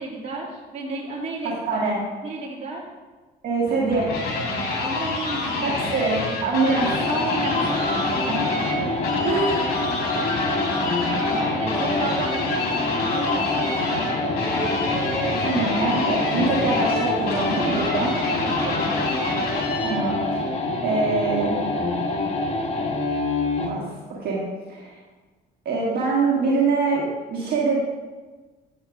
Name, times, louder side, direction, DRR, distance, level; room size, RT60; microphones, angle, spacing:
voice 1, 0.0-1.8 2.2-2.8 4.4-5.9 6.5-8.9 9.2-9.4 11.1-14.4 18.3-18.9, right 2 dB, 40° right, -3 dB, 2.6 m, -33 dB
voice 2, 1.4-2.0 3.4-4.1 5.6-6.9 8.3-8.4 9.2-9.6 15.4-18.2 19.8-20.4 20.8-21.6 23.7-23.8 24.1-24.4 24.7-25.0 25.7-27.8, right 3 dB, 60° right, -4 dB, 1.7 m, -24 dB
sound 1, 3.7-20.2, left 3 dB, 65° left, 2.2 m, -28 dB
sound 2, 6.8-23.8, left 2 dB, 40° left, 1.1 m, -26 dB
8.7 x 8.2 x 3.5 m, 1.3 s
cardioid pair, 110°, 17 cm